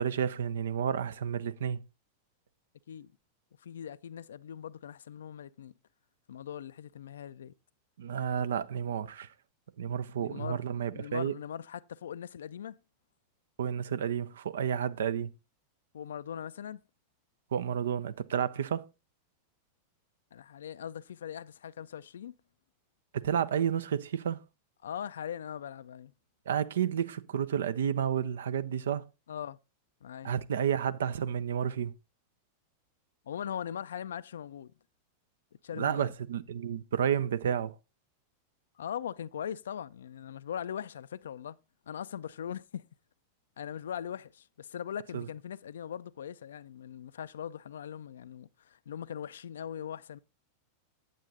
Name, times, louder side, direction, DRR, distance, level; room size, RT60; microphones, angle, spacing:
voice 1, 0.0-1.8 8.0-9.3 9.8-11.3 13.6-15.3 17.5-18.9 23.1-24.4 26.5-29.1 30.2-31.9 35.8-37.8 45.1-45.3, right 8 dB, 65° right, 0.5 m, -31 dB
voice 2, 3.6-5.7 6.3-7.5 10.2-10.6 10.9-12.8 15.9-16.8 20.3-22.3 24.8-26.1 29.3-29.6 30.0-30.3 33.3-34.7 35.6-36.1 38.8-41.6 41.9-42.9 43.6-50.2, left 9 dB, 65° left, 0.4 m, -40 dB
9.1 x 8.0 x 3.9 m
figure-of-eight pair, 90°, 0 cm